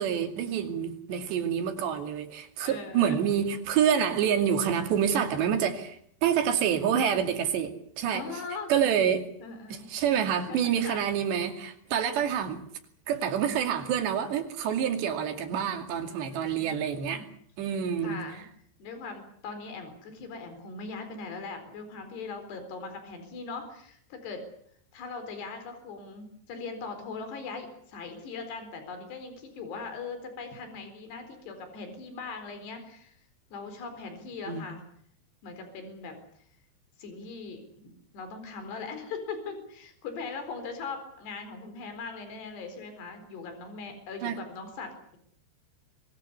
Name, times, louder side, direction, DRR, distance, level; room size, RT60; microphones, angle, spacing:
voice 1, 0.0-8.3 8.7-9.3 9.7-12.6 13.1-17.3 17.6-18.3 34.5-34.6 44.2-44.4, right 8 dB, 85° right, 6 dB, 4.6 m, -27 dB
voice 2, 2.6-3.2 3.5-3.6 8.1-8.7 9.4-9.9 10.4-11.0 16.1-17.3 18.0-18.4 18.8-24.4 24.9-33.2 33.5-34.8 35.4-36.1 37.0-37.6 38.1-45.2, left 4 dB, 75° left, 8 dB, 6.3 m, -40 dB
24.5 x 23.0 x 7.0 m, 0.66 s
omnidirectional pair, 4.9 m